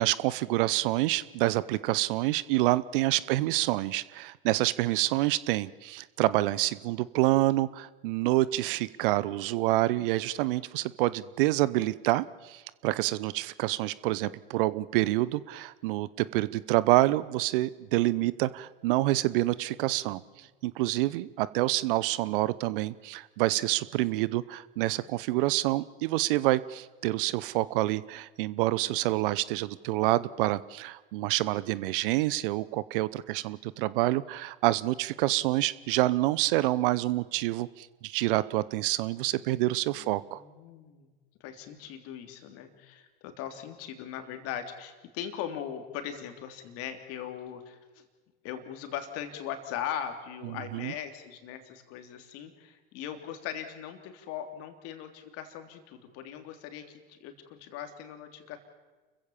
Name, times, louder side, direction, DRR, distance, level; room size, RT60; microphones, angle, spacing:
voice 1, 0.0-40.4 50.4-50.9, right 17 dB, 60° right, 19 dB, 0.8 m, -27 dB
voice 2, 39.9-41.1 41.4-47.8 48.4-58.6, left 9 dB, 50° left, 6 dB, 3.1 m, -39 dB
29.5 x 15.5 x 7.3 m, 1.3 s
hypercardioid pair, 90°, 30 cm